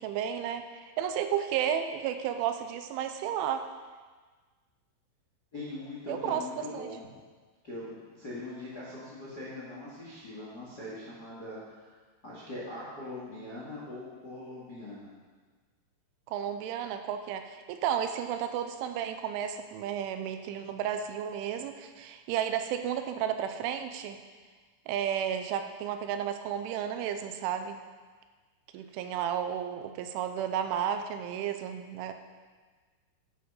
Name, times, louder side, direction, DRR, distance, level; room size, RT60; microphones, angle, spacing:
voice 1, 0.0-3.6 6.1-6.9 16.3-24.2 24.9-27.8 28.7-32.1, right 9 dB, 85° right, 7 dB, 3.0 m, -32 dB
voice 2, 5.5-7.1 7.6-12.0 12.2-15.1, left 2 dB, 60° left, -6 dB, 1.0 m, -42 dB
13.0 x 7.7 x 5.6 m, 1.4 s
omnidirectional pair, 5.9 m